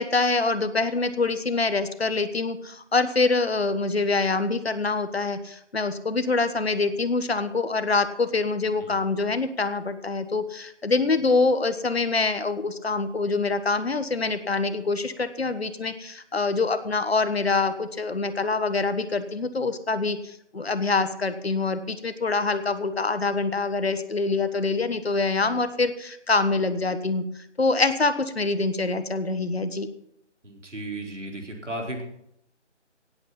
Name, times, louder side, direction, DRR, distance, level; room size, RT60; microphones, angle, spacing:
voice 1, 0.0-20.2 20.5-27.2 27.6-29.9, left 3 dB, 60° left, 11 dB, 1.4 m, -25 dB
voice 2, 30.4-32.0, right 1 dB, 75° right, 2 dB, 4.4 m, -35 dB
17.0 x 8.8 x 5.8 m, 0.76 s
figure-of-eight pair, 155°, 36 cm